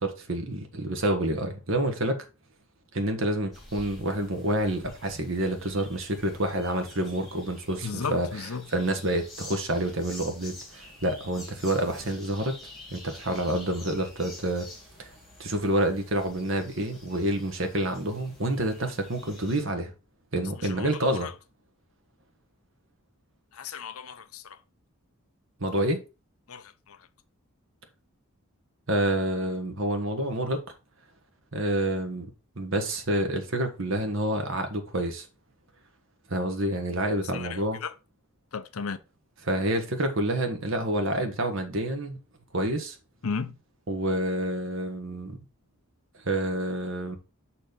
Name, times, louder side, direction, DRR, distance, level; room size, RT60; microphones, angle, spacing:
voice 1, 0.0-2.2 2.9-12.6 12.9-14.7 15.0-15.1 15.4-19.9 20.3-21.3 25.6-26.0 28.9-30.6 31.5-32.3 32.6-35.3 36.3-37.8 39.4-42.2 42.5-43.0 43.9-45.4 46.2-47.2, right 1 dB, 60° right, 1.4 m, -28 dB
sound 1, 3.5-19.7, left 1 dB, ahead, 2.4 m, -48 dB
voice 2, 7.8-8.6 20.7-21.3 23.5-24.6 26.5-27.0 37.3-37.9 38.5-39.0 43.2-43.6, left 5 dB, 75° left, 0.7 m, -35 dB
6.2 x 4.4 x 5.2 m
head